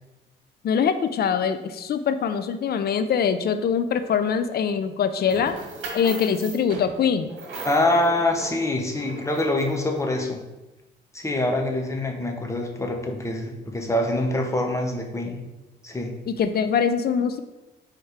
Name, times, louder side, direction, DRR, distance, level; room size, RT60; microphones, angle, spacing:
voice 1, 0.6-5.5 5.9-7.3 16.3-17.4, left 7 dB, 50° left, 10 dB, 0.6 m, -23 dB
sound 1, 5.3-10.0, right 2 dB, 80° right, 1.8 m, -38 dB
voice 2, 7.6-10.4 11.1-15.4 15.8-16.2, left 1 dB, 15° left, 2 dB, 1.1 m, -25 dB
5.1 x 4.2 x 4.7 m, 1.0 s
cardioid pair, 90°, 20 cm